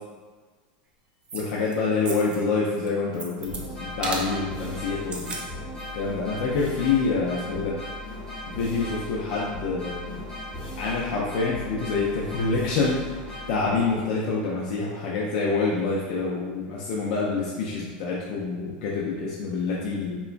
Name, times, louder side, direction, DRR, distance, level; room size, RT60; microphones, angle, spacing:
voice 1, 1.3-5.4 5.9-7.7 8.5-10.2 10.8-13.0 13.5-20.2, left 4 dB, 60° left, -4 dB, 0.4 m, -26 dB
sound 1, 1.3-1.7 2.0-2.4 2.8-3.6 4.0-4.3 5.0-5.5 5.8-5.9, right 3 dB, 20° right, 0.3 m, -34 dB
sound 2, 3.4-14.1, left 1 dB, 20° left, 0.9 m, -37 dB
2.9 x 2.2 x 2.4 m, 1.4 s
supercardioid pair, 145°, 5 cm